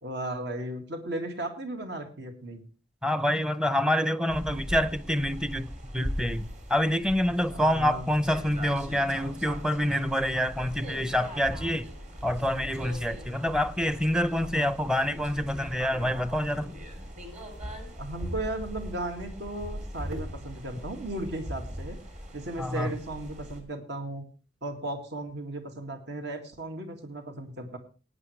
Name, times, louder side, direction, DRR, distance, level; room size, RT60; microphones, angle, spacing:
voice 1, 0.0-2.6 7.5-8.1 14.4-14.7 18.0-22.0 22.3-24.3 24.6-27.8, right 1 dB, 65° right, 2.1 m, -36 dB
voice 2, 3.0-11.9 12.2-16.7 22.6-22.9, equal, 5° right, 0.7 m, -27 dB
sound 1, 4.3-23.6, equal, 40° right, 3.2 m, -40 dB
18.0 x 9.8 x 3.2 m
head